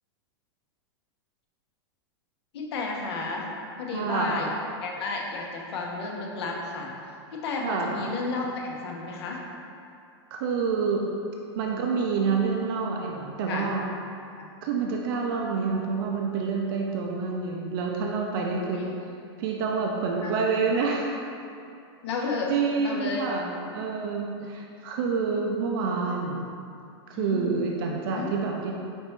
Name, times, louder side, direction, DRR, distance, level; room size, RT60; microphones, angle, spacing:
voice 1, 2.5-3.5 3.8-4.5 4.8-6.9 7.3-9.4 11.0-11.1 13.5-13.7 14.3-14.5 18.7-18.9 20.2-20.3 22.0-23.3 24.4-24.5 27.1-27.5 28.1-28.3, left 3 dB, 70° left, -1 dB, 0.8 m, -32 dB
voice 2, 3.9-4.4 7.6-7.9 10.3-11.0 11.6-13.8 14.6-18.8 19.4-21.2 22.5-26.4 27.1-28.7, right 5 dB, 55° right, 0 dB, 0.5 m, -28 dB
5.1 x 3.1 x 3.1 m, 2.5 s
supercardioid pair, 145°, 14 cm